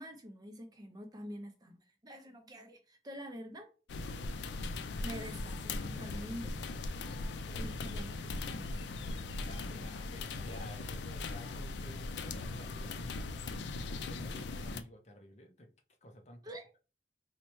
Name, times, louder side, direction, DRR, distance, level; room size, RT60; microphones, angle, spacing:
voice 1, 0.0-3.7 5.0-6.6 7.5-9.0 9.2-10.5 16.4-16.7, equal, 20° right, 0.5 m, -47 dB
sound 1, 3.9-14.8, left 3 dB, 75° left, 0.4 m, -39 dB
voice 2, 7.3-7.7 9.2-13.0 13.8-15.7 16.0-16.4, left 1 dB, 40° left, 0.7 m, -52 dB
4.3 x 2.1 x 3.0 m
head